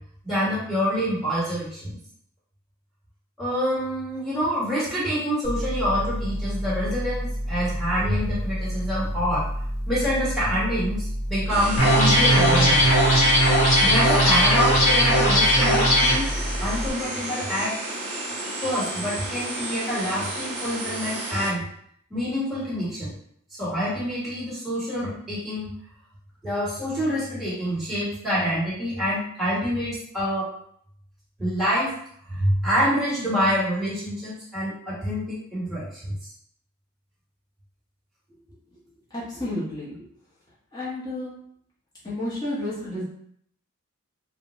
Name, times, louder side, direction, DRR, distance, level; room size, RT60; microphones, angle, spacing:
voice 1, 0.2-2.0 3.4-9.5 9.9-12.9 13.8-16.3 16.6-17.7 18.6-21.7 22.1-23.1 23.6-25.7 26.4-30.5 31.4-31.9 32.3-36.1, equal, ahead, -10 dB, 1.5 m, -26 dB
sound 1, 5.4-16.9, equal, 45° left, 0.8 m, -30 dB
sound 2, 11.5-21.5, right 1 dB, 25° right, 0.8 m, -32 dB
sound 3, 11.8-16.2, equal, 70° left, 1.1 m, -18 dB
voice 2, 39.1-40.0 40.7-41.3 42.0-43.0, left 1 dB, 20° left, -9 dB, 0.8 m, -31 dB
3.6 x 2.2 x 3.0 m, 0.66 s
head